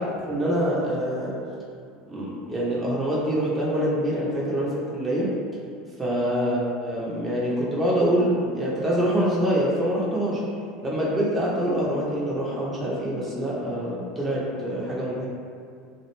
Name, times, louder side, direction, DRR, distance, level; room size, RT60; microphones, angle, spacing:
voice 1, 0.3-1.4 2.1-5.4 6.0-10.4 10.8-15.3, equal, 20° right, -6 dB, 0.5 m, -25 dB
2.4 x 2.0 x 3.0 m, 2.2 s
hypercardioid pair, 80°, 0 cm